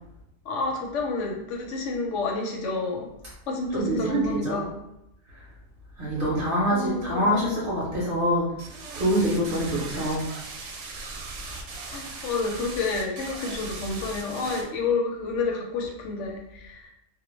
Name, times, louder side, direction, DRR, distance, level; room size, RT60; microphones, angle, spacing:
voice 1, 0.5-3.1 3.5-4.8 6.7-7.6 11.9-16.9, left 3 dB, 85° left, 1 dB, 0.9 m, -29 dB
voice 2, 3.7-4.6 6.0-8.5 9.0-10.2, equal, 55° right, -5 dB, 0.8 m, -25 dB
sound 1, 8.6-14.6, right 3 dB, 85° right, 0.9 m, -38 dB
2.3 x 2.0 x 3.0 m, 0.84 s
omnidirectional pair, 1.2 m